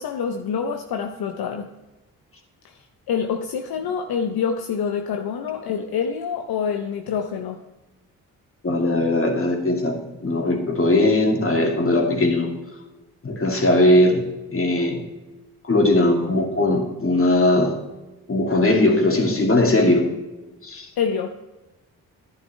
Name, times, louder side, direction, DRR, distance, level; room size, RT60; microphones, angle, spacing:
voice 1, 0.0-1.7 3.1-7.6 21.0-21.3, left 6 dB, 65° left, 5 dB, 0.8 m, -26 dB
voice 2, 8.6-12.5 13.2-14.2 14.5-15.0 15.6-17.7 18.3-20.0 20.6-20.9, left 1 dB, 35° left, 2 dB, 2.4 m, -19 dB
10.5 x 10.0 x 3.3 m, 1.1 s
supercardioid pair, 45°, 39 cm